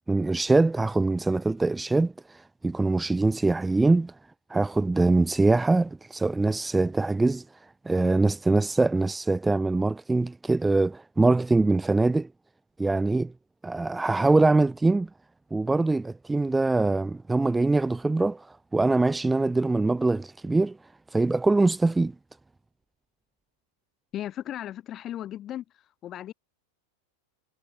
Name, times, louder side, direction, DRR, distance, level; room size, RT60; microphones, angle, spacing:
voice 1, 0.1-4.1 4.5-7.4 7.8-12.3 12.8-13.3 13.6-15.1 15.5-20.8 21.1-22.1, right 3 dB, 10° right, 1.6 m, -23 dB
voice 2, 24.1-25.6 26.0-26.3, left 12 dB, 30° left, 7.9 m, -35 dB
figure-of-eight pair, 90°, 0 cm